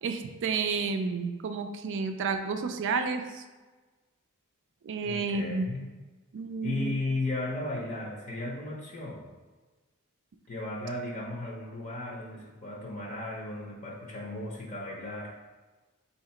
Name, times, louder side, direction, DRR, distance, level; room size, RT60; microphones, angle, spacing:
voice 1, 0.0-3.4 4.8-5.7 6.3-6.9, right 4 dB, 60° right, 7 dB, 0.4 m, -31 dB
voice 2, 5.0-5.9 6.6-9.3 10.5-15.3, left 2 dB, 35° left, -2 dB, 0.7 m, -35 dB
3.7 x 2.8 x 4.3 m, 1.3 s
head